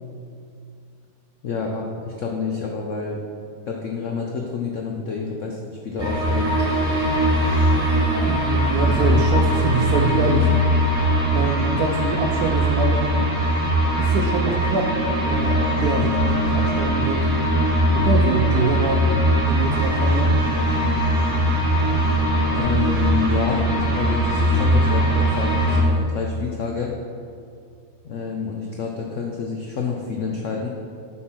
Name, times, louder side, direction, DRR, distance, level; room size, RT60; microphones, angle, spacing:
voice 1, 1.4-3.2 3.7-6.5 22.5-23.6 23.9-26.9 28.0-30.7, left 5 dB, 85° left, 0 dB, 0.6 m, -28 dB
sound 1, 6.0-25.8, equal, 25° right, 1.6 m, -20 dB
voice 2, 8.2-10.5 11.3-13.2 14.0-17.3 17.9-19.1 19.5-20.3, right 4 dB, 75° right, 2 dB, 0.9 m, -25 dB
7.3 x 4.3 x 6.0 m, 2.3 s
omnidirectional pair, 2.1 m